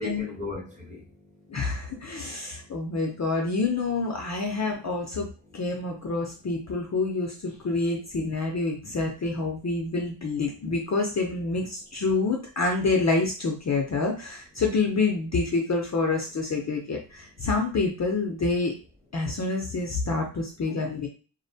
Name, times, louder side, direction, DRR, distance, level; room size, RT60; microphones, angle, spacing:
voice 1, 0.0-3.1 5.4-5.9 6.7-6.8 17.3-17.4, left 2 dB, 15° right, -2 dB, 0.8 m, -41 dB
voice 2, 1.5-18.7 19.1-21.1, left 3 dB, 40° left, 0 dB, 0.5 m, -27 dB
2.5 x 2.1 x 2.6 m, 0.35 s
wide cardioid pair, 120°, 46 cm